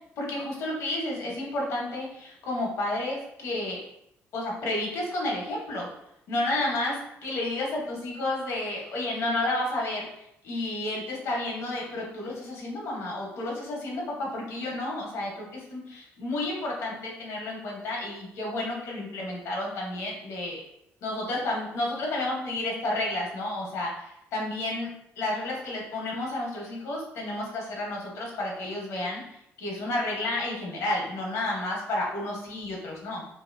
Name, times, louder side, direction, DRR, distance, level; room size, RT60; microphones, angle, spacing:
voice 1, 0.2-3.8 4.3-5.9 6.3-10.0 10.4-20.6 21.0-29.2 29.6-33.3, left 1 dB, 70° left, -2 dB, 0.9 m, -31 dB
2.8 x 2.7 x 2.5 m, 0.79 s
cardioid pair, 150°, 5 cm